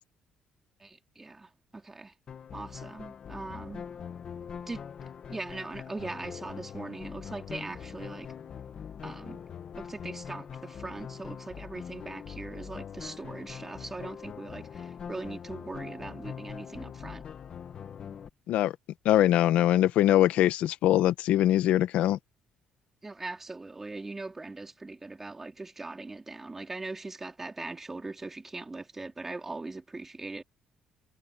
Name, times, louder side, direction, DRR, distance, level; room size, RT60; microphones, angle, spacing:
voice 1, 0.8-2.1 2.5-3.9 4.7-8.3 9.0-9.4 9.8-17.2 23.0-30.4, right 3 dB, 15° right, 3.7 m, -40 dB
sound 1, 2.3-18.3, left 7 dB, 40° left, 1.5 m, -42 dB
voice 2, 19.0-22.2, left 13 dB, 80° left, 1.0 m, -22 dB
cardioid pair, 150°, 2 cm